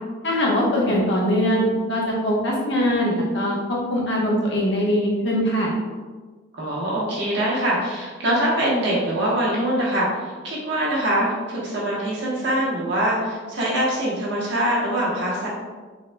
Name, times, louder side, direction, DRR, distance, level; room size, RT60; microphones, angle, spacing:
voice 1, 0.2-5.7, equal, 65° left, -4 dB, 1.0 m, -22 dB
voice 2, 6.5-15.5, right 1 dB, 60° right, -6 dB, 1.2 m, -23 dB
4.0 x 3.8 x 2.2 m, 1.4 s
head